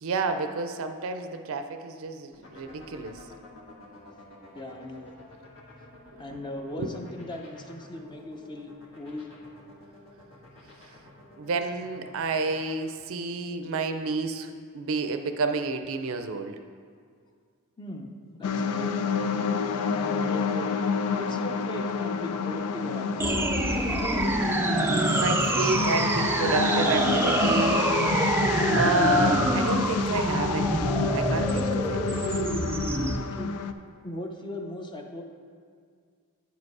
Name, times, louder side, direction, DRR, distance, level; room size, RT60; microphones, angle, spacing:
voice 1, 0.0-3.1 6.8-6.9 11.4-16.5 24.7-28.2 28.7-32.2, right 3 dB, 65° right, 7 dB, 0.5 m, -29 dB
sound 1, 2.3-12.7, left 2 dB, 65° left, 1.5 m, -49 dB
voice 2, 4.6-5.1 6.2-9.3 17.8-18.9 19.9-20.8 21.2-23.5 33.2-33.6 34.0-35.2, left 1 dB, 20° left, 3 dB, 0.7 m, -38 dB
sound 2, 18.4-33.7, left 5 dB, 80° left, 0.4 m, -29 dB
sound 3, 23.2-33.2, right 2 dB, 10° right, 0.3 m, -26 dB
9.2 x 5.1 x 4.7 m, 2.1 s
head